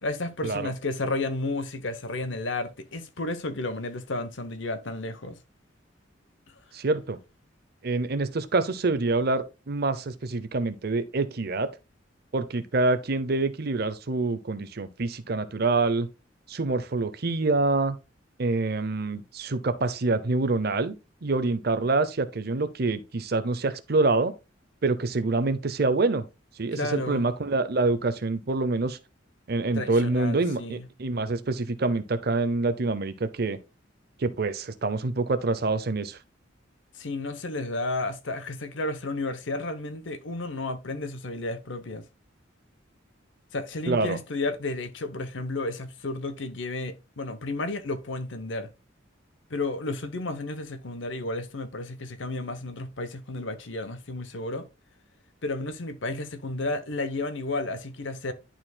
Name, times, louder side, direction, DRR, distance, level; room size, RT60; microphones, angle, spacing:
voice 1, 0.0-5.4 26.7-27.2 29.7-30.9 36.9-42.1 43.5-48.7 49.5-54.7 55.4-58.3, left 2 dB, 75° left, 0.9 m, -32 dB
voice 2, 6.7-7.2 7.8-11.7 12.3-16.1 16.5-18.0 18.4-21.0 21.2-24.3 24.8-26.2 26.6-29.0 29.5-33.6 34.2-36.2 43.9-44.2, right 3 dB, 55° right, 0.7 m, -26 dB
11.0 x 4.4 x 2.3 m
head